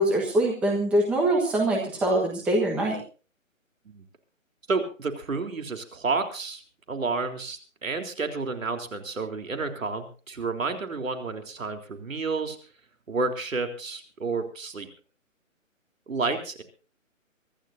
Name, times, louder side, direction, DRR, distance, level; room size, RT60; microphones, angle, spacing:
voice 1, 0.0-3.0, right 1 dB, 5° right, -2 dB, 1.3 m, -23 dB
voice 2, 4.7-6.6 6.9-12.6 13.1-14.9 16.1-16.6, right 3 dB, 70° right, 6 dB, 3.7 m, -30 dB
24.5 x 14.0 x 2.7 m, 0.36 s
hypercardioid pair, 165°, 40 cm